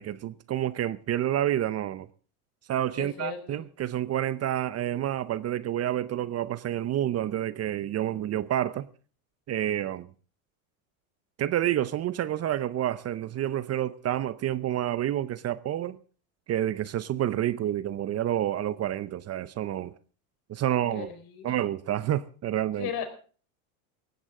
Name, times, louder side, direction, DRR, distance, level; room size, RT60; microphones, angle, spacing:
voice 1, 0.0-2.1 2.7-8.9 9.5-10.1 11.4-16.0 16.5-19.9 20.5-21.1 21.4-22.9, right 12 dB, 35° right, 0.7 m, -29 dB
voice 2, 3.0-3.6 20.9-21.6 22.8-23.1, left 8 dB, 50° left, 4.5 m, -36 dB
18.5 x 15.0 x 3.7 m
supercardioid pair, 100°, 44 cm